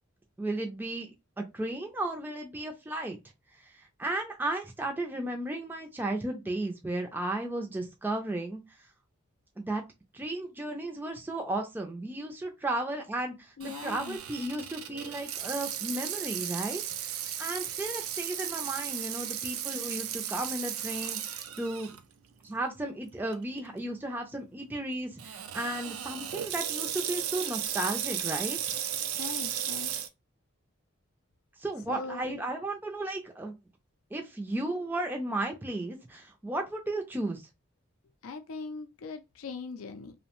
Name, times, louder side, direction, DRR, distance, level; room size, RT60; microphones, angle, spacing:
voice 1, 0.4-1.1 1.4-3.2 4.0-8.6 9.6-9.8 10.1-16.8 17.4-21.9 22.4-28.8 31.6-33.6 34.1-37.4, right 1 dB, 10° right, 0.3 m, -34 dB
voice 2, 13.6-14.2 29.1-29.9 31.9-32.4 38.2-40.1, left 4 dB, 85° left, 0.4 m, -40 dB
Water tap faucet / Sink (filling or washing), 13.6-22.0 22.5-22.6 23.3-23.6 25.2-30.1, right 10 dB, 90° right, 0.4 m, -35 dB
2.7 x 2.1 x 2.9 m
head